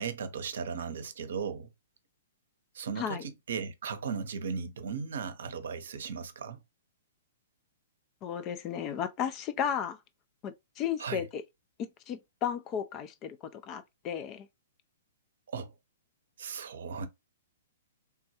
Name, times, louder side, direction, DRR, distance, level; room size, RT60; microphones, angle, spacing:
voice 1, 0.0-1.7 2.7-6.6 11.0-11.3 15.5-15.7 16.4-17.1, right 6 dB, 65° right, 0.6 m, -36 dB
voice 2, 8.2-10.0 10.4-11.4 12.1-14.5, left 8 dB, 30° left, 0.4 m, -34 dB
3.4 x 2.2 x 2.9 m
hypercardioid pair, 120°, 0 cm